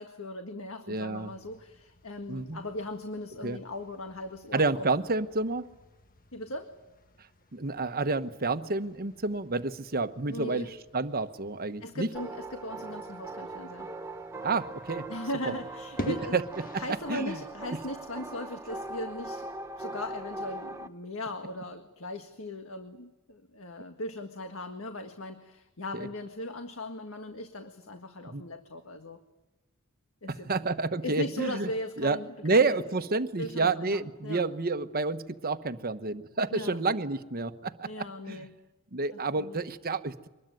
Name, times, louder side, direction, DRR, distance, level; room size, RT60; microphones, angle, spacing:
voice 1, 0.0-4.9 6.3-6.7 10.3-10.7 11.8-13.9 15.1-16.4 16.8-19.5 19.8-29.2 30.2-30.7 31.0-32.8 33.4-34.4 36.5-36.8 37.8-38.6 39.1-39.6, left 1 dB, 70° left, 6 dB, 1.7 m, -39 dB
voice 2, 0.9-1.3 2.3-2.6 3.4-3.6 4.5-5.7 7.5-12.1 14.4-15.1 15.5-15.6 16.1-16.8 17.1-17.4 25.9-26.1 28.2-28.4 30.3-31.7 32.0-38.5 38.9-40.3, right 3 dB, 45° right, 10 dB, 1.1 m, -29 dB
sound 1, 1.1-17.1, equal, 40° left, 1.3 m, -50 dB
sound 2, 12.1-20.9, right 2 dB, 15° right, 1.1 m, -40 dB
24.5 x 21.0 x 9.3 m, 1.1 s
head